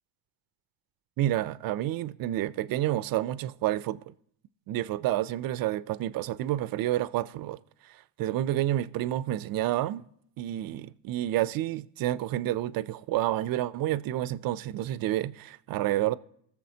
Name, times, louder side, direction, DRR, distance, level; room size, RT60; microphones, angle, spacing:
voice 1, 1.2-4.0 4.7-7.6 8.2-10.0 10.4-16.2, right 14 dB, 45° right, 0.4 m, -29 dB
20.0 x 7.1 x 2.8 m
cardioid pair, 115°, 50 cm